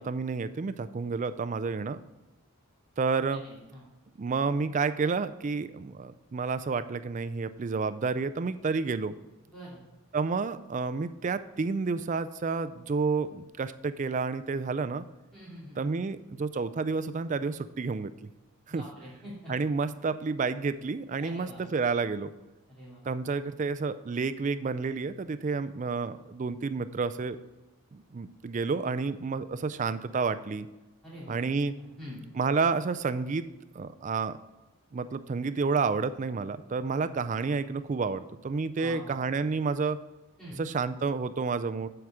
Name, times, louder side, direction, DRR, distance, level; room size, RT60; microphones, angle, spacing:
voice 1, 0.0-2.0 3.0-3.4 4.2-9.1 10.1-15.0 15.8-18.1 18.7-18.8 19.5-22.3 23.0-27.4 27.9-30.7 31.3-31.7 32.3-33.5 33.7-34.4 34.9-40.0 40.6-41.9, right 4 dB, 35° right, 12 dB, 0.3 m, -30 dB
voice 2, 3.4-3.8 9.5-9.8 15.3-15.8 18.8-19.5 21.2-21.6 22.7-23.0 31.0-31.4 31.8-32.2 38.8-39.2 40.4-40.6, equal, 5° left, -9 dB, 2.6 m, -45 dB
7.9 x 4.8 x 7.3 m, 1.0 s
head